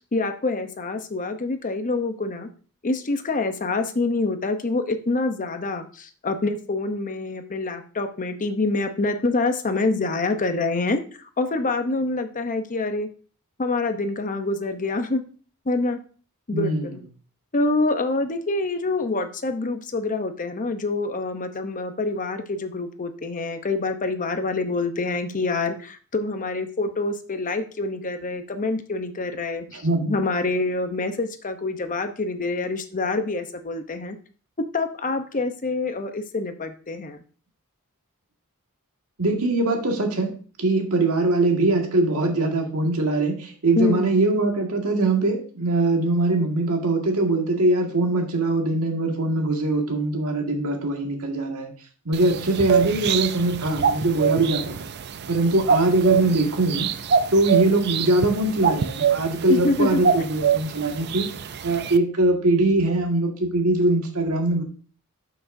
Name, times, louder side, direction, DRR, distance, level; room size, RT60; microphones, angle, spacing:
voice 1, 0.0-2.5 2.8-13.1 13.6-15.2 15.7-16.0 16.5-17.0 17.5-34.2 34.7-37.2 43.8-44.2 59.5-60.1, left 3 dB, 35° left, 8 dB, 0.8 m, -26 dB
voice 2, 16.5-16.9 29.7-30.1 39.2-51.7 52.1-54.9 55.3-56.9 57.3-61.3 61.6-64.6, right 2 dB, 75° right, 2 dB, 1.8 m, -22 dB
sound 1, 52.1-62.0, right 7 dB, 50° right, 0.5 m, -25 dB
12.0 x 6.1 x 2.6 m, 0.41 s
head